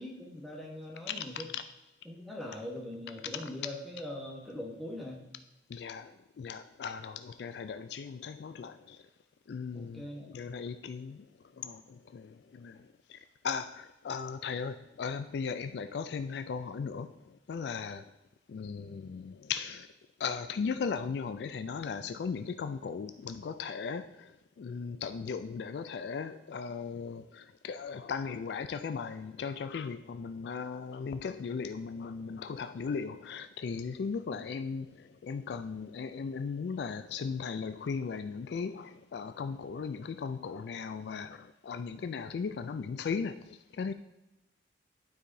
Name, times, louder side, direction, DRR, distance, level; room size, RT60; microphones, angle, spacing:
voice 1, 0.0-1.5 2.0-5.2 9.7-10.3 34.3-34.4, left 1 dB, ahead, -3 dB, 1.2 m, -42 dB
voice 2, 1.1-1.6 5.7-9.0 9.5-11.2 11.6-13.2 13.4-17.2 17.5-18.1 18.5-19.9 20.2-43.9, left 5 dB, 65° left, 10 dB, 0.3 m, -37 dB
11.5 x 4.8 x 2.7 m, 0.96 s
head